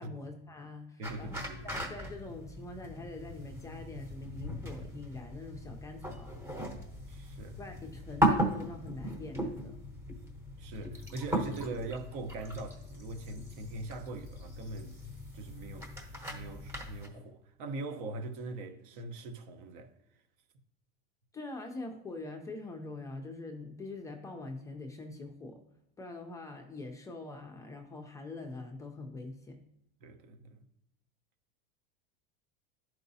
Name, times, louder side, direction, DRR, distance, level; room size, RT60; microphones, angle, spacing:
voice 1, 0.0-6.3 7.6-9.8 21.3-25.6 26.0-29.6, left 2 dB, 10° left, 0.4 m, -44 dB
sound 1, 1.0-17.1, equal, 10° right, 0.9 m, -37 dB
voice 2, 1.0-1.7 7.1-7.6 10.6-15.0 15.3-15.9 16.3-19.9 30.0-30.6, right 3 dB, 65° right, 0.9 m, -42 dB
10.5 x 4.6 x 2.7 m
supercardioid pair, 150°, 29 cm